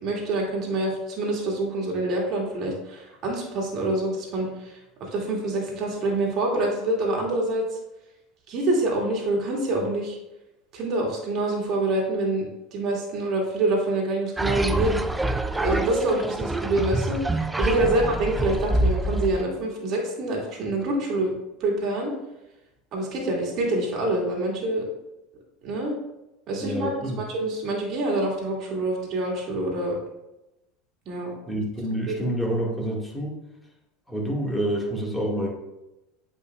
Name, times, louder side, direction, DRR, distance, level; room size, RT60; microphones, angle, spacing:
voice 1, 0.0-7.6 8.5-10.2 10.7-12.5 12.7-15.0 15.5-21.4 21.6-22.1 22.9-24.9 25.6-25.9 26.5-26.9 27.2-30.0 31.1-31.4 32.1-32.2, right 2 dB, 50° right, -1 dB, 2.1 m, -26 dB
sound 1, 14.4-19.4, right 1 dB, 10° right, 0.3 m, -26 dB
voice 2, 26.6-27.2 31.5-33.4 34.1-35.5, right 1 dB, 10° left, -2 dB, 1.8 m, -28 dB
8.1 x 5.2 x 2.3 m, 0.94 s
hypercardioid pair, 100°, 0 cm